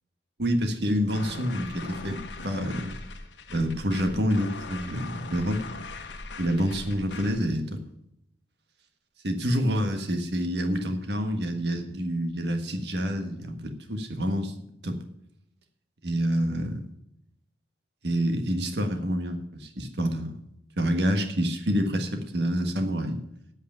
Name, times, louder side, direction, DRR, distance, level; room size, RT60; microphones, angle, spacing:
voice 1, 0.4-3.0 3.5-5.6 6.4-7.8 9.2-14.5 14.8-15.0 16.0-16.8 18.0-20.4 20.8-23.2, equal, 65° right, 6 dB, 1.5 m, -27 dB
sound 1, 1.1-7.4, left 3 dB, 80° left, 1.2 m, -40 dB
8.1 x 8.0 x 8.8 m, 0.76 s
head